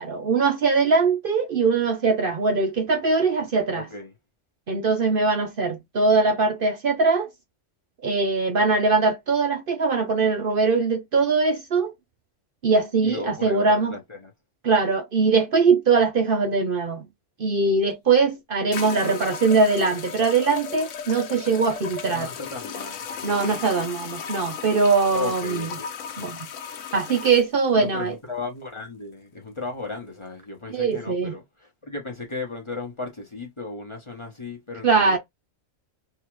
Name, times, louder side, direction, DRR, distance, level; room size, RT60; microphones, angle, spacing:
voice 1, 0.0-3.9 4.7-7.3 8.0-11.9 12.6-13.9 14.6-17.0 17.4-22.3 23.2-25.7 26.2-26.5 26.9-28.1 30.7-31.4 34.8-35.2, right 4 dB, 55° right, 0.8 m, -21 dB
voice 2, 3.7-4.1 13.0-14.3 22.1-23.0 25.1-25.9 27.8-35.2, left 3 dB, 25° left, 1.0 m, -35 dB
sound 1, 17.9-18.0 18.7-27.5, left 7 dB, 85° left, 1.0 m, -36 dB
3.8 x 2.4 x 3.0 m
omnidirectional pair, 1.3 m